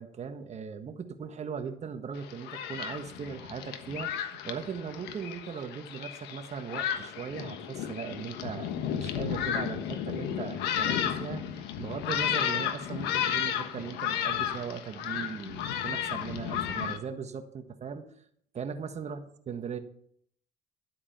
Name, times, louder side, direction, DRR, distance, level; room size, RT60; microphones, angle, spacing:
voice 1, 0.0-18.1 18.5-19.2 19.5-19.8, right 6 dB, 40° right, 7 dB, 1.4 m, -39 dB
Thunderstorm, 2.2-17.0, left 9 dB, 90° left, 1.3 m, -33 dB
12.0 x 8.5 x 5.9 m, 0.64 s
cardioid pair, 110°, 17 cm